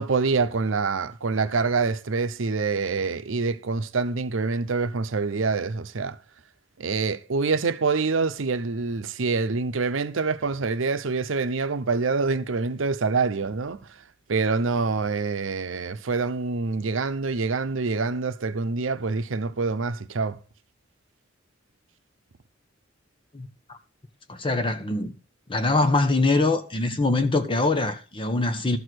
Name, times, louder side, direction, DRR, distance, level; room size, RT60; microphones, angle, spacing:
voice 1, 0.0-6.2 6.8-13.8 14.3-20.4, right 4 dB, 85° right, 0.7 m, -26 dB
voice 2, 23.3-23.8 24.3-25.1 25.5-28.8, left 2 dB, 25° left, 1.0 m, -23 dB
12.5 x 4.8 x 6.2 m
head